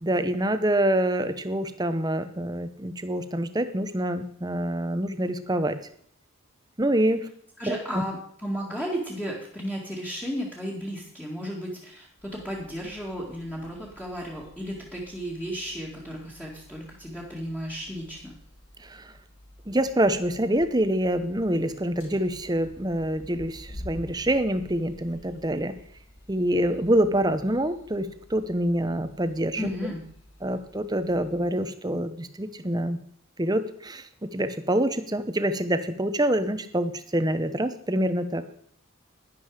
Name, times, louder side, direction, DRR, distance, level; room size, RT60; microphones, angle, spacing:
voice 1, 0.0-5.8 6.8-7.3 7.7-8.0 18.8-19.1 19.7-25.7 26.3-29.7 30.4-33.0 33.4-38.4, right 1 dB, 20° right, 11 dB, 0.8 m, -26 dB
voice 2, 7.6-18.3 29.6-30.0, equal, 5° left, -5 dB, 2.1 m, -34 dB
sound 1, 12.2-31.5, left 1 dB, 65° left, 5.1 m, -50 dB
11.5 x 11.0 x 4.9 m, 0.63 s
head